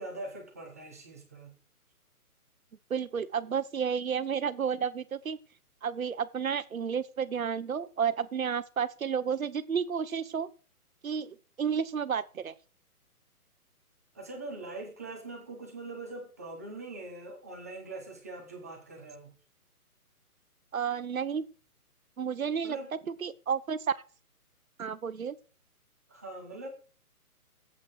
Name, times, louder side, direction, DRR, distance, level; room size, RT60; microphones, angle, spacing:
voice 1, 0.0-1.6 14.1-19.3 22.6-22.9 26.1-26.7, right 2 dB, 10° right, 1.0 m, -42 dB
voice 2, 2.9-5.4 5.8-10.5 11.0-12.5 20.7-21.4 22.2-22.8 23.2-24.0 24.8-25.4, right 7 dB, 65° right, 1.2 m, -31 dB
17.0 x 8.0 x 4.9 m
hypercardioid pair, 175°, 45 cm